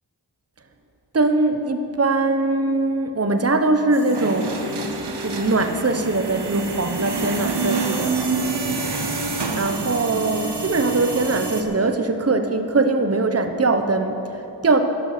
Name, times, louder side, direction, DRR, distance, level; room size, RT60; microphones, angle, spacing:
voice 1, 1.1-4.6 5.2-8.2 8.6-8.8 9.5-14.8, right 3 dB, 35° right, 7 dB, 1.0 m, -21 dB
sound 1, 3.9-11.6, right 3 dB, 70° right, 1.4 m, -27 dB
12.5 x 12.0 x 6.7 m, 2.9 s
cardioid pair, 40°, 43 cm